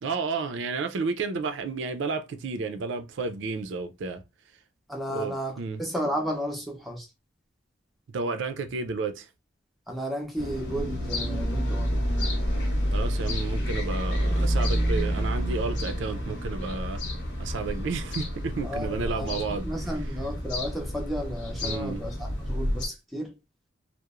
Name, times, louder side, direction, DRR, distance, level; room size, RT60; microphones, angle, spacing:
voice 1, 0.0-4.2 5.1-5.8 8.1-9.3 12.9-17.0 17.4-19.7 21.6-22.0, right 4 dB, 75° right, 0.4 m, -31 dB
voice 2, 4.9-7.1 9.9-12.0 18.6-19.4 19.6-23.3, equal, ahead, 0.4 m, -33 dB
sound 1, 10.4-22.9, equal, 65° left, 0.9 m, -29 dB
2.9 x 2.0 x 2.3 m
head